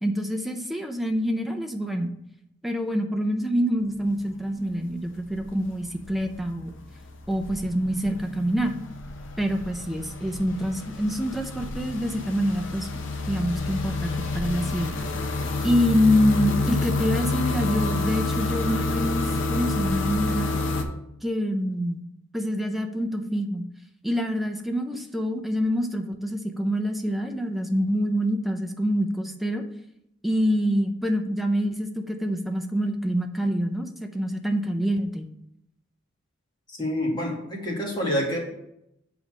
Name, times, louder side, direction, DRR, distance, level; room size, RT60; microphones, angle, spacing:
voice 1, 0.0-2.1 2.6-6.7 7.3-8.8 9.4-12.9 13.3-15.0 15.6-19.2 19.5-20.6 21.2-22.0 22.3-23.7 24.0-29.6 30.2-35.3, equal, ahead, 3 dB, 0.6 m, -26 dB
sound 1, 3.8-4.4 4.6-20.8, left 3 dB, 75° left, 0.8 m, -29 dB
voice 2, 36.7-38.4, equal, 25° left, -3 dB, 2.0 m, -27 dB
7.0 x 4.1 x 6.1 m, 0.80 s
head